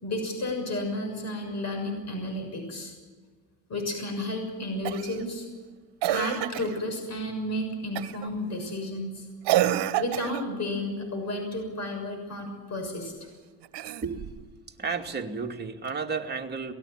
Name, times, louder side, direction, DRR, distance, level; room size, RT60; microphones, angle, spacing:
voice 1, 0.0-2.9 3.7-5.4 6.1-9.2 9.9-13.1, left 1 dB, 35° left, 4 dB, 6.5 m, -32 dB
Cough, 4.8-5.2 6.0-6.8 8.0-8.3 9.4-10.5 13.6-14.4 15.9-16.0, right 13 dB, 65° right, 1.5 m, -28 dB
voice 2, 14.8-16.7, right 5 dB, 20° right, 1 dB, 2.5 m, -32 dB
23.5 x 19.5 x 7.5 m, 1.5 s
cardioid pair, 110°, 44 cm